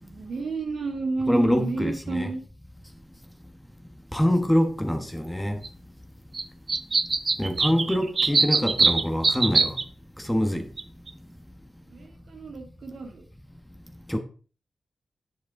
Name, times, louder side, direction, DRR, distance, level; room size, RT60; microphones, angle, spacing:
voice 1, 0.0-2.4 7.8-7.9 8.2-8.4 11.9-13.2, right 3 dB, 70° right, 2.6 m, -32 dB
voice 2, 1.3-2.3 4.1-5.6 7.4-9.8 10.2-10.7 14.1-14.2, equal, 5° left, 1.3 m, -24 dB
sound 1, 5.6-5.7 6.3-6.4 6.7-9.8 10.8-10.9 11.1-11.2, right 4 dB, 40° right, 0.5 m, -22 dB
9.6 x 8.0 x 3.8 m
wide cardioid pair, 115°, 0 cm